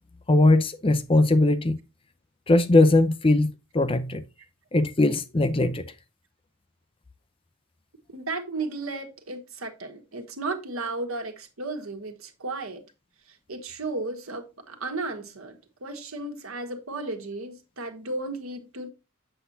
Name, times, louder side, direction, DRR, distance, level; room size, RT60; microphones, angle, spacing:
voice 1, 0.3-1.8 2.5-4.2 4.7-5.8, left 2 dB, 25° left, 0.6 m, -20 dB
voice 2, 8.1-12.8 13.3-18.9, right 3 dB, 75° right, 1.5 m, -34 dB
7.8 x 6.9 x 2.7 m
head